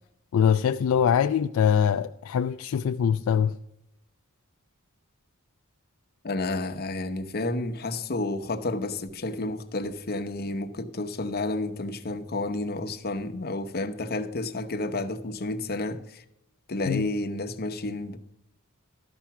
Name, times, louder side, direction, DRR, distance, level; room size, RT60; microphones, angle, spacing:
voice 1, 0.3-3.6 16.9-17.1, left 8 dB, 65° left, 0.3 m, -23 dB
voice 2, 6.2-16.2 16.7-18.2, left 2 dB, 45° left, 0.8 m, -31 dB
12.5 x 5.8 x 7.1 m
head